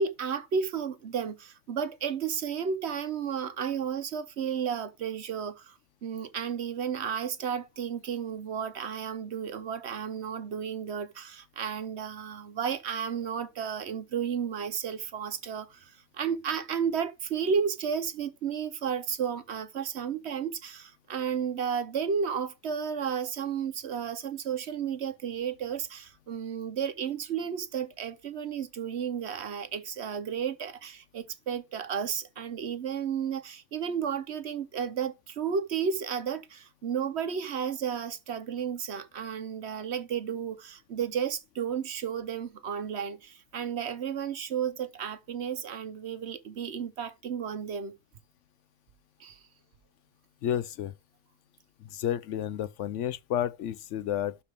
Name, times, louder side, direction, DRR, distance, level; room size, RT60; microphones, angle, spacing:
voice 1, 0.0-5.7 6.0-47.9 49.2-49.4, right 7 dB, 60° right, 1.0 m, -33 dB
voice 2, 50.4-50.9 51.8-54.4, left 10 dB, 70° left, 0.9 m, -31 dB
12.0 x 4.9 x 3.5 m
omnidirectional pair, 1.4 m